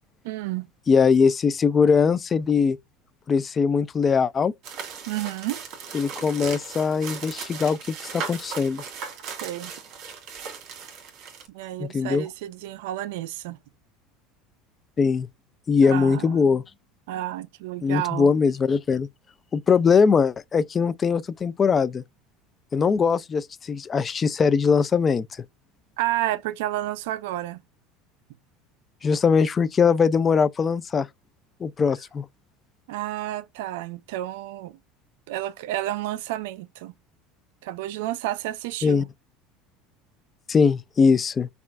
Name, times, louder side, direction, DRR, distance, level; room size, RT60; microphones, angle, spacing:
voice 1, 0.2-0.7 5.1-5.6 9.4-9.7 11.5-13.6 15.8-16.6 17.1-18.3 26.0-27.6 32.9-34.8 35.3-36.9 37.6-39.1, right 14 dB, 80° right, 0.4 m, -31 dB
voice 2, 0.9-2.8 3.3-4.5 5.9-8.8 11.8-12.3 15.0-15.3 15.7-16.6 17.8-19.1 19.5-22.0 22.7-25.3 29.0-31.1 31.6-32.3 38.8-39.0 40.5-41.5, left 5 dB, 30° left, 0.3 m, -21 dB
sound 1, 4.6-11.5, right 6 dB, 60° right, 1.7 m, -37 dB
5.6 x 2.4 x 2.4 m
supercardioid pair, 115°, 0 cm